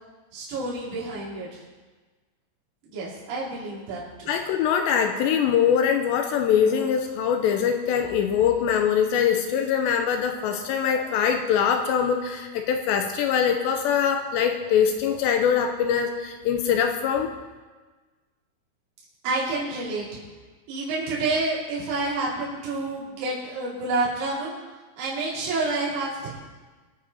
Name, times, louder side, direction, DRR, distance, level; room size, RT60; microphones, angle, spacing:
voice 1, 0.3-1.6 2.9-4.3 19.2-20.2 20.7-24.6 25.0-26.3, right 3 dB, 70° right, -8 dB, 5.2 m, -29 dB
voice 2, 4.3-17.3, left 8 dB, 80° left, 5 dB, 2.7 m, -23 dB
22.5 x 8.7 x 4.2 m, 1.3 s
omnidirectional pair, 5.5 m